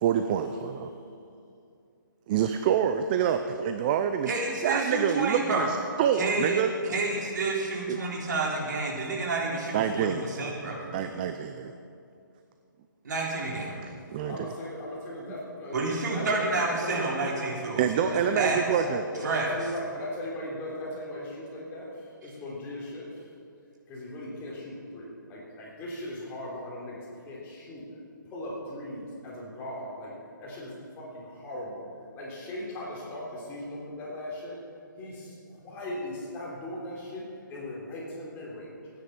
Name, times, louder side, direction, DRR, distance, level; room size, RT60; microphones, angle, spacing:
voice 1, 0.0-0.9 2.3-4.3 4.6-6.7 7.9-8.0 9.7-10.3 10.9-11.7 13.8-14.5 17.8-19.0, right 9 dB, 25° right, 8 dB, 0.5 m, -27 dB
voice 2, 4.3-5.6 6.2-10.8 13.0-13.7 15.7-17.9 18.1-18.6 19.2-19.5 22.2-22.3, right 3 dB, 60° right, -2 dB, 3.4 m, -29 dB
voice 3, 14.2-15.8 16.1-17.1 18.0-21.9 22.2-23.1 23.9-27.8 28.3-30.1 30.4-31.8 32.1-34.6 35.0-37.2 37.5-38.7, left 1 dB, 15° left, -5 dB, 3.4 m, -38 dB
16.0 x 9.7 x 5.9 m, 2.5 s
hypercardioid pair, 150°, 11 cm